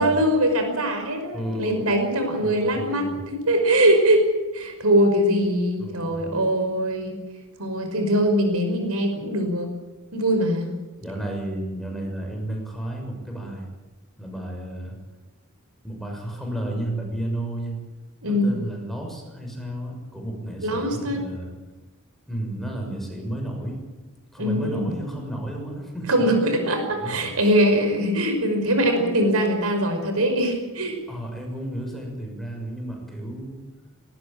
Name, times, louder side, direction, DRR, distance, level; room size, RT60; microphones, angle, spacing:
voice 1, 0.0-4.3 4.5-7.2 7.6-9.7 10.1-10.7 18.2-18.6 20.6-21.3 24.4-24.9 26.1-31.0, equal, 80° right, 6 dB, 5.4 m, -22 dB
voice 2, 1.3-1.9 2.4-3.2 5.8-6.3 11.0-13.7 14.2-14.9 15.8-17.8 18.3-21.5 22.3-23.8 24.3-26.2 26.9-27.3 31.1-33.6, right 1 dB, ahead, 1 dB, 6.6 m, -32 dB
20.0 x 19.0 x 8.9 m, 1.2 s
head